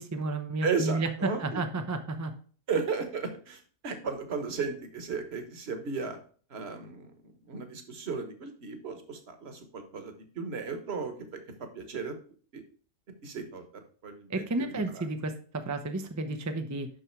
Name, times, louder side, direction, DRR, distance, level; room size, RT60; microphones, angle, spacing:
voice 1, 0.0-2.3 14.3-16.9, right 2 dB, 25° right, 6 dB, 0.4 m, -32 dB
voice 2, 0.6-1.6 2.7-6.2 6.5-7.1 7.5-11.4 11.7-12.1 12.5-12.6 13.2-13.6 14.0-15.1, right 5 dB, 45° right, 7 dB, 1.4 m, -35 dB
6.5 x 6.1 x 4.5 m, 0.43 s
omnidirectional pair, 1.6 m